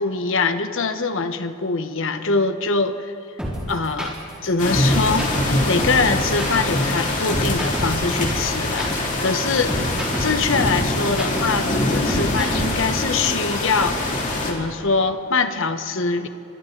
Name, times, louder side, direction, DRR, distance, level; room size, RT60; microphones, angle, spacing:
voice 1, 0.0-3.1 3.7-4.2 4.4-5.3 5.7-14.2 14.4-16.3, left 4 dB, 60° left, 9 dB, 1.1 m, -23 dB
sound 1, 3.4-12.9, equal, 5° right, 4.5 m, -28 dB
sound 2, 4.6-14.5, left 2 dB, 35° left, 2.9 m, -24 dB
30.0 x 25.0 x 4.0 m, 2.8 s
head